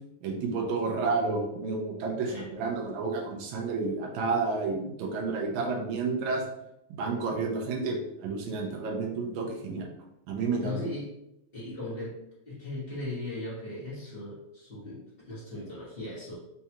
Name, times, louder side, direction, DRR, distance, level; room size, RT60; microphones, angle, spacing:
voice 1, 0.2-6.4 6.9-9.9 10.3-10.9, right 4 dB, 80° right, 1 dB, 2.0 m, -30 dB
voice 2, 10.6-11.1 11.5-12.2 12.4-16.4, left 2 dB, 50° left, -9 dB, 0.6 m, -38 dB
5.3 x 2.3 x 2.8 m, 0.83 s
omnidirectional pair, 3.4 m